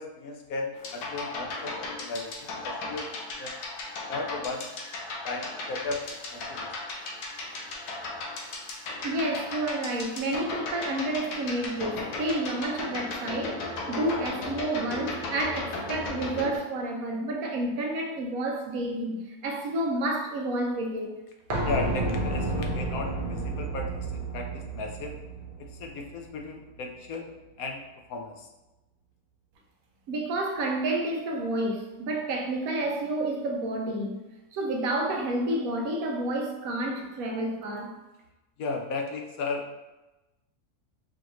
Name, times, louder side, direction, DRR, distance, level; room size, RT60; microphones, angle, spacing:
voice 1, 0.0-3.1 3.4-3.5 4.1-4.7 5.2-6.7 21.6-25.1 25.6-27.3 27.6-27.8 28.1-28.5 38.6-39.8, left 3 dB, 70° left, 1.0 m, -35 dB
sound 1, 0.8-16.6, left 2 dB, 90° left, 1.3 m, -36 dB
voice 2, 9.0-21.1 30.1-34.2 34.5-37.9, right 1 dB, 70° right, 1.0 m, -30 dB
sound 2, 21.5-27.1 27.4-27.5, right 2 dB, 45° right, 0.7 m, -32 dB
4.9 x 2.5 x 3.0 m
omnidirectional pair, 1.6 m